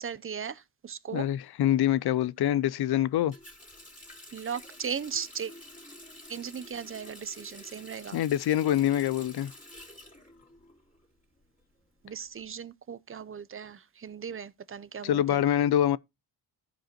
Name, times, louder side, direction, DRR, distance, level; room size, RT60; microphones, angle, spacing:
voice 1, 0.0-1.3 4.3-5.5 6.3-8.2 12.0-15.4, right 7 dB, 30° right, 0.5 m, -37 dB
voice 2, 1.1-3.3 8.1-9.5 15.0-16.0, left 11 dB, 55° left, 0.5 m, -25 dB
Water tap faucet, 3.3-11.1 11.4-12.4, left 1 dB, 15° left, 2.9 m, -49 dB
14.0 x 5.1 x 2.9 m
cardioid pair, 85°, 46 cm